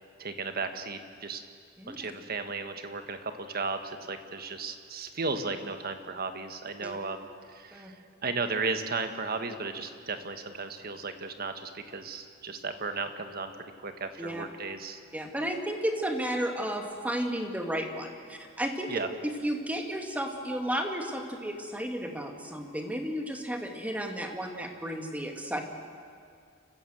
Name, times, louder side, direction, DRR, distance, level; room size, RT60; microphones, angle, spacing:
voice 1, 0.2-1.4 1.9-7.9 8.2-13.5 13.8-15.0 18.9-19.1, right 4 dB, 50° right, 8 dB, 1.4 m, -35 dB
voice 2, 1.8-2.1 6.8-7.0 7.7-7.9 14.2-14.4 15.1-18.9 19.4-25.6, equal, 10° right, 3 dB, 2.0 m, -33 dB
29.5 x 15.0 x 7.7 m, 2.2 s
head